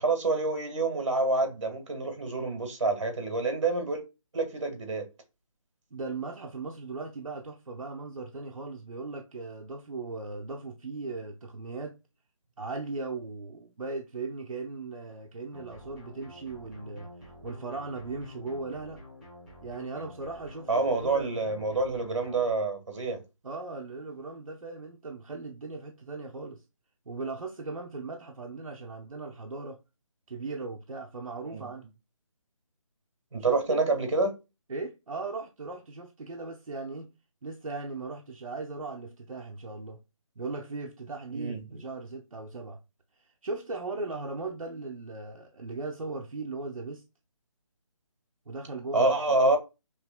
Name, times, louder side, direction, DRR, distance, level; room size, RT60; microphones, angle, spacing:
voice 1, 0.0-4.0 4.3-5.1 20.7-23.2 31.4-31.7 33.3-34.4 41.3-41.6 48.9-49.6, right 3 dB, 60° right, 1.6 m, -27 dB
voice 2, 5.9-12.0 12.6-17.1 17.4-19.0 19.6-21.3 23.4-26.6 27.1-29.8 30.3-31.9 33.4-33.8 34.7-37.1 37.4-40.0 40.4-42.8 43.4-47.0 48.5-49.6, right 3 dB, 90° right, 0.8 m, -38 dB
sound 1, 15.5-22.5, left 1 dB, ahead, 1.0 m, -49 dB
5.8 x 3.2 x 2.2 m
figure-of-eight pair, 165°, 17 cm